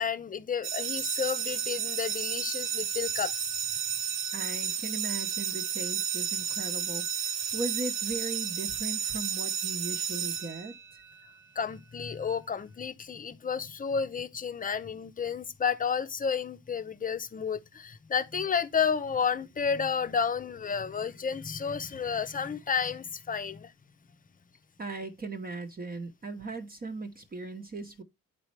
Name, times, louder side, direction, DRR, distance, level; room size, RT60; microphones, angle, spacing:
voice 1, 0.0-3.3 11.6-23.7, left 6 dB, 30° left, 0.7 m, -31 dB
sound 1, 0.6-11.1, right 8 dB, 60° right, 0.8 m, -32 dB
voice 2, 4.3-10.7 24.8-28.0, right 3 dB, 30° right, 0.9 m, -38 dB
8.9 x 4.2 x 3.2 m
cardioid pair, 90°, 30 cm